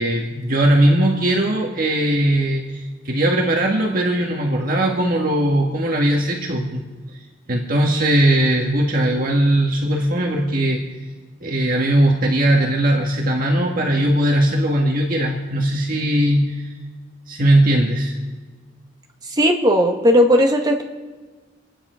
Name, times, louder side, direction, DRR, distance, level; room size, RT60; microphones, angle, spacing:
voice 1, 0.0-2.8 3.1-6.8 7.5-10.8 11.4-16.6 17.3-18.1, right 1 dB, 50° right, 0 dB, 1.8 m, -19 dB
voice 2, 19.4-20.8, equal, 25° right, 1 dB, 1.9 m, -16 dB
27.5 x 10.0 x 5.1 m, 1.3 s
head